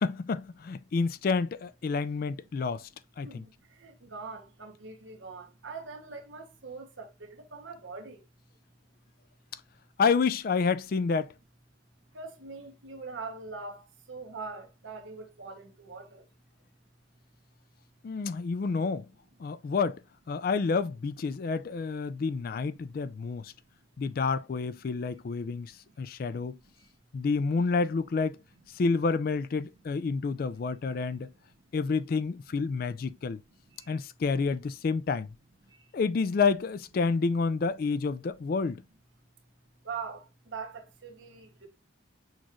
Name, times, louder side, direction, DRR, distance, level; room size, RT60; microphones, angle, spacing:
voice 1, 0.0-2.9 3.2-3.4 10.0-11.3 18.0-19.1 19.4-20.0 20.3-23.5 24.0-25.7 26.0-26.6 27.1-28.4 28.8-31.3 31.7-33.4 33.9-35.3 35.9-38.8, left 4 dB, 50° left, 0.3 m, -29 dB
voice 2, 3.2-8.2 12.1-16.2 25.5-25.6 25.8-25.9 26.2-26.4 26.6-26.9 30.9-31.1 33.2-33.3 33.6-34.0 35.6-35.9 39.8-41.7, right 4 dB, 75° right, 1.0 m, -43 dB
6.3 x 2.4 x 2.9 m
head